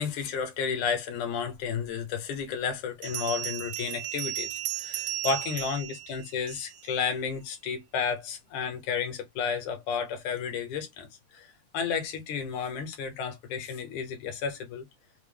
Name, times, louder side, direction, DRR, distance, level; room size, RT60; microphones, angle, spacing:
voice 1, 0.0-11.1 11.3-14.9, left 6 dB, 85° left, 2.6 m, -32 dB
Bell, 1.8-1.9 3.0-6.9, right 15 dB, 75° right, 1.8 m, -35 dB
5.9 x 2.0 x 3.4 m
omnidirectional pair, 3.4 m